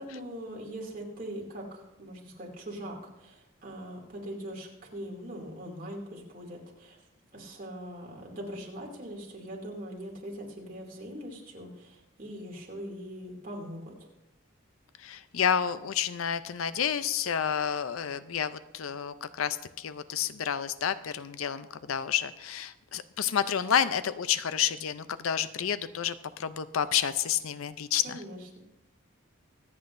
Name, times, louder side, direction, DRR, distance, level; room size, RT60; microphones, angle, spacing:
voice 1, 0.0-7.0 7.3-14.1 28.0-28.6, equal, 40° right, -1 dB, 2.6 m, -41 dB
voice 2, 15.0-28.2, left 8 dB, 85° left, 13 dB, 0.5 m, -30 dB
25.0 x 8.6 x 2.6 m, 0.93 s
head